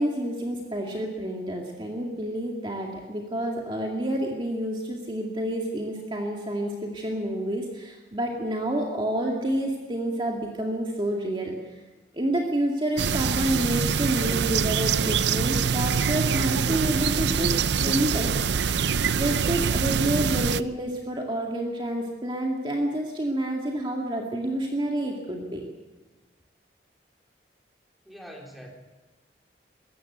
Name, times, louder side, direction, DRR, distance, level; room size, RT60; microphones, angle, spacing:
voice 1, 0.0-11.5 12.1-18.3 18.6-18.9 19.2-25.6, right 1 dB, 30° right, 0 dB, 2.2 m, -29 dB
sound 1, 13.0-20.6, right 6 dB, 80° right, 0.6 m, -24 dB
voice 2, 28.0-28.7, equal, ahead, -1 dB, 3.8 m, -43 dB
21.0 x 16.5 x 9.4 m, 1.2 s
head